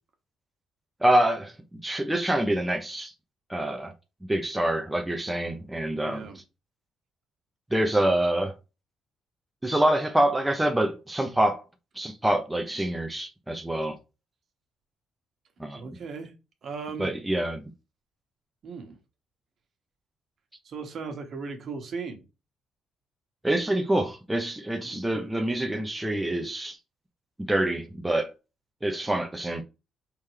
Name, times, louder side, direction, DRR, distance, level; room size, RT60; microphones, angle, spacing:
voice 1, 1.0-3.1 3.5-3.9 4.3-6.3 7.7-8.5 9.6-11.6 12.0-14.0 15.6-15.8 17.0-17.6 23.4-26.8 27.5-28.3 28.8-29.6, right 1 dB, 10° right, 0.8 m, -26 dB
voice 2, 6.0-6.4 15.7-16.3 16.6-17.1 18.6-18.9 20.6-22.2 24.9-25.0, right 5 dB, 55° right, 1.4 m, -37 dB
4.2 x 3.7 x 3.3 m
cardioid pair, 90°, 0 cm